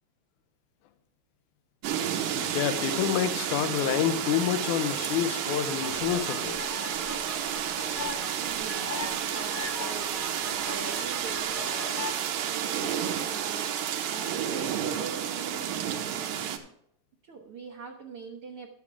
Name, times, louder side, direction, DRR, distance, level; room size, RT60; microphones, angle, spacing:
sound 1, 1.8-16.6, right 9 dB, 90° right, 2.6 m, -31 dB
voice 1, 2.3-6.6, left 11 dB, 75° left, 2.1 m, -28 dB
sound 2, 5.8-12.1, left 4 dB, 45° left, 1.5 m, -40 dB
voice 2, 8.4-13.7 14.0-16.2 17.2-18.7, right 4 dB, 70° right, 1.3 m, -43 dB
12.5 x 8.4 x 3.6 m
omnidirectional pair, 3.9 m